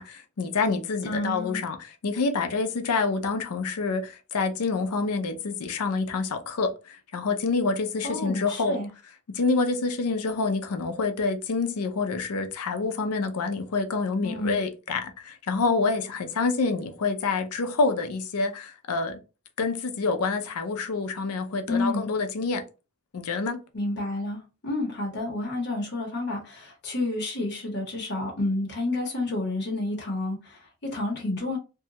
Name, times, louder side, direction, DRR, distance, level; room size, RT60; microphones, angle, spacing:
voice 1, 0.0-1.8 2.0-8.8 9.3-19.2 19.6-22.6 23.1-23.6, left 4 dB, 85° left, 0.5 m, -27 dB
voice 2, 1.0-1.6 8.0-8.9 14.2-14.6 21.7-22.1 23.7-31.6, left 2 dB, 50° left, 0.9 m, -30 dB
2.7 x 2.2 x 2.8 m
head